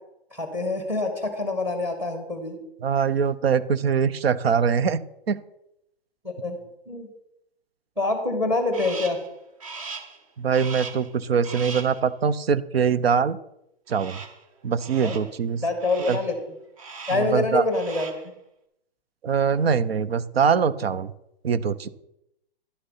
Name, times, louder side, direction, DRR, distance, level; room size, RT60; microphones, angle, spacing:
voice 1, 0.3-2.6 6.2-6.6 6.9-7.1 8.0-9.2 15.0-15.2 15.6-16.4 17.1-18.1, left 2 dB, 10° right, 5 dB, 1.5 m, -26 dB
voice 2, 2.8-5.0 5.3-5.4 10.4-13.4 13.9-14.2 14.6-15.6 16.0-16.2 17.1-17.7 19.2-21.1 21.4-21.9, right 6 dB, 75° right, 16 dB, 0.8 m, -23 dB
Crow, 8.7-9.3 9.6-10.2 10.5-11.1 11.4-12.0 13.9-14.4 14.8-15.3 15.8-16.3 16.8-17.3 17.6-18.3, right 4 dB, 35° right, 1.3 m, -39 dB
11.0 x 6.7 x 5.6 m, 0.83 s
hypercardioid pair, 175°, 31 cm